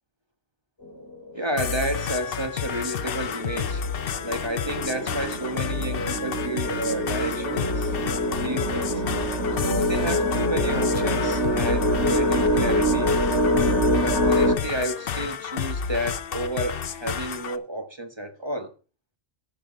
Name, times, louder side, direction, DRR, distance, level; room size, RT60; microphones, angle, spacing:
sound 1, 0.8-1.3 2.2-2.3 2.8-14.6, equal, 85° left, 2.9 m, -25 dB
voice 1, 1.3-3.8 4.2-7.9 8.3-9.0 9.6-13.1 14.0-18.7, right 1 dB, 25° right, 1.3 m, -31 dB
sound 2, 1.6-17.6, left 7 dB, 60° left, 0.9 m, -31 dB
14.0 x 5.2 x 5.2 m
omnidirectional pair, 1.1 m